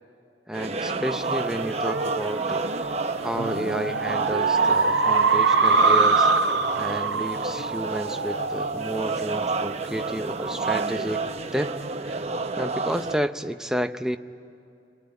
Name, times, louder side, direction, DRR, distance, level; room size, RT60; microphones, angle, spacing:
voice 1, 0.5-2.7 3.2-6.3 6.8-11.7 12.0-12.3 12.6-14.2, equal, 5° right, 7 dB, 0.7 m, -31 dB
sound 1, 0.5-13.2, right 3 dB, 35° right, 0.9 m, -30 dB
sound 2, 1.2-10.1, right 4 dB, 75° right, 0.9 m, -24 dB
27.5 x 22.0 x 9.7 m, 2.5 s
head